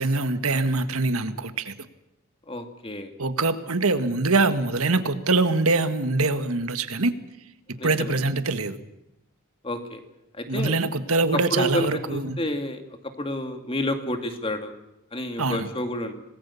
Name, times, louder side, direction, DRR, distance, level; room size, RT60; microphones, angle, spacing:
voice 1, 0.0-1.7 3.2-7.1 7.8-8.8 10.5-12.4 15.4-15.7, right 3 dB, 75° right, 10 dB, 1.6 m, -24 dB
voice 2, 2.5-3.1 7.8-8.1 9.6-10.0 10.4-10.8 11.3-14.7 15.1-16.1, left 1 dB, 25° left, 6 dB, 2.3 m, -30 dB
26.0 x 19.0 x 7.1 m, 0.88 s
head